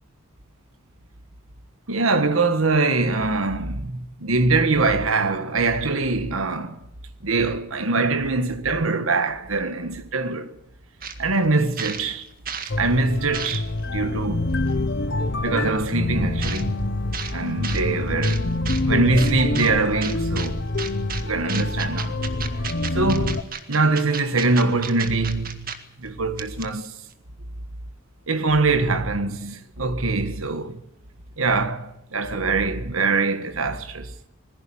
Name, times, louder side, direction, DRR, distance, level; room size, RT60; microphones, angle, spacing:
voice 1, 1.9-6.8 7.2-10.5 11.2-12.3 12.6-14.5 15.4-16.8 17.3-18.5 18.9-20.6 21.2-22.2 22.9-25.7 26.0-26.9 28.3-30.8 31.4-34.1, right 3 dB, 80° right, 1.6 m, -23 dB
sound 1, 11.0-11.2 11.5-12.7 13.1-13.8 14.7-14.8 16.4-16.6 17.1-17.3 17.6-17.8 18.2-18.8 19.2-19.7 20.0-20.5 20.8-21.2 21.5-25.8 26.1-26.2 26.4-26.9, right 7 dB, 45° right, 1.9 m, -32 dB
sound 2, 12.7-23.4, left 2 dB, 55° left, 1.1 m, -26 dB
20.5 x 16.0 x 8.8 m
head